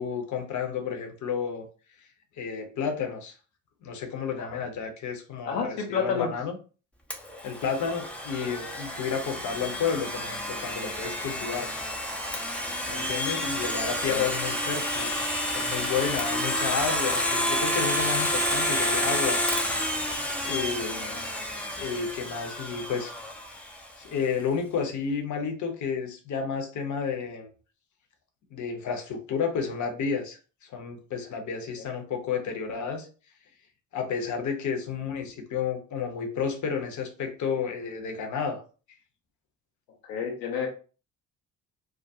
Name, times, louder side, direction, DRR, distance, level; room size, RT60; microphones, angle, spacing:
voice 1, 0.0-1.7 2.4-3.3 3.8-6.6 7.4-11.7 12.9-15.1 15.5-19.4 20.4-21.3 21.8-23.1 24.0-27.5 28.5-30.4 30.7-33.1 33.9-38.6, left 6 dB, 35° left, 4 dB, 0.7 m, -31 dB
voice 2, 5.4-6.3 14.1-14.3 40.0-40.7, left 6 dB, 80° left, 1 dB, 0.7 m, -29 dB
Domestic sounds home sounds, 7.1-23.9, left 1 dB, 5° left, 0.5 m, -30 dB
2.3 x 2.2 x 2.7 m, 0.35 s
figure-of-eight pair, 45°, 49 cm